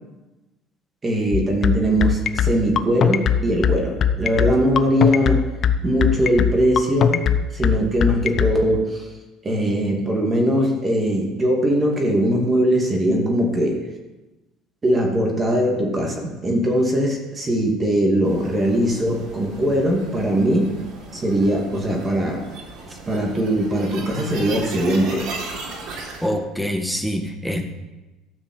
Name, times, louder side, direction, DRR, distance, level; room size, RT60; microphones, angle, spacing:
voice 1, 1.0-5.4 5.8-7.2 7.5-9.1 9.4-13.8 14.8-20.7 21.1-22.4 23.1-25.3, equal, 20° right, 0 dB, 2.4 m, -20 dB
sound 1, 1.3-8.5, left 8 dB, 40° left, 0.7 m, -19 dB
sound 2, 18.2-26.3, right 3 dB, 60° right, 3.7 m, -36 dB
voice 2, 26.2-27.6, equal, ahead, 4 dB, 1.6 m, -25 dB
13.0 x 6.1 x 7.9 m, 1.1 s
cardioid pair, 135°, 0 cm